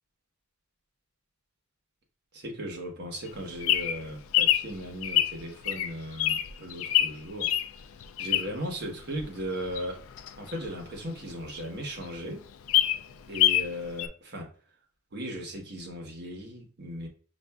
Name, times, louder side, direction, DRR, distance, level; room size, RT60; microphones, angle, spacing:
voice 1, 2.3-7.5 8.2-10.1 10.3-12.4 13.3-14.5 15.1-17.1, equal, 55° right, 1 dB, 1.0 m, -37 dB
Bird vocalization bird call bird song, 3.3-8.7 9.2-11.3 11.7-11.8 12.0-12.1 12.5-13.7 14.0-14.1, left 12 dB, 75° left, 0.3 m, -26 dB
6.6 x 2.5 x 2.3 m, 0.43 s
head